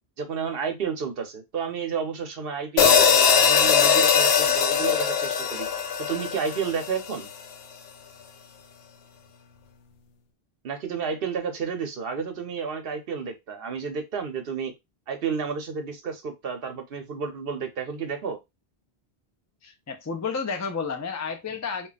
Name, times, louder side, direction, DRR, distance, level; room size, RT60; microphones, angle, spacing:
voice 1, 0.2-5.7 6.1-7.3 10.6-14.7 15.1-18.4, right 6 dB, 70° right, 0.9 m, -31 dB
sound 1, 2.8-7.1, left 7 dB, 85° left, 0.8 m, -20 dB
voice 2, 19.6-21.9, left 5 dB, 25° left, 0.4 m, -31 dB
2.3 x 2.2 x 3.9 m
omnidirectional pair, 1.0 m